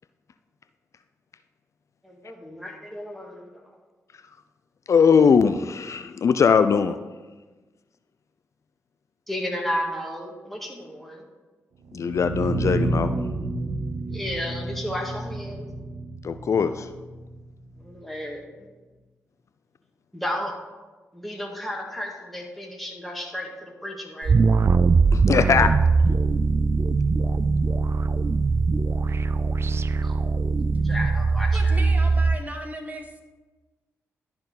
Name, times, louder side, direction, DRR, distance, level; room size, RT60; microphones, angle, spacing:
voice 1, 2.0-3.5 9.3-11.2 14.1-15.7 17.8-18.4 20.1-20.6 21.1-24.5 30.0-30.1 30.8-31.8, equal, 5° left, -1 dB, 2.1 m, -33 dB
voice 2, 4.9-7.0 11.9-13.1 16.2-16.9 25.1-25.7, left 6 dB, 55° left, 10 dB, 0.4 m, -20 dB
sound 1, 11.8-17.9, right 2 dB, 70° right, 0.8 m, -30 dB
sound 2, 24.2-32.4, right 4 dB, 45° right, 0.4 m, -21 dB
voice 3, 31.5-33.1, right 1 dB, 25° right, 4 dB, 1.3 m, -35 dB
12.0 x 4.4 x 4.0 m, 1.3 s
supercardioid pair, 45°, 6 cm